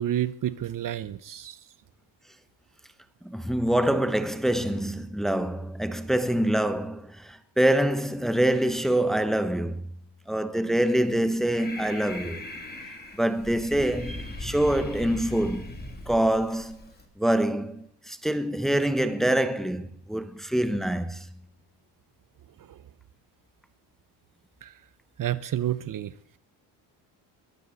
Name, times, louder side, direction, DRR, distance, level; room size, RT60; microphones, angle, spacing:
voice 1, 0.0-1.6 22.7-22.8 24.6-24.7 25.2-26.1, right 11 dB, 45° right, 0.7 m, -30 dB
voice 2, 3.2-9.9 10.3-12.4 13.2-15.7 16.1-16.9 17.2-21.3, right 1 dB, ahead, 0.8 m, -25 dB
Breathing, 11.1-17.0, left 1 dB, 20° left, 2.6 m, -39 dB
22.0 x 14.0 x 4.0 m
cardioid pair, 115°, 45 cm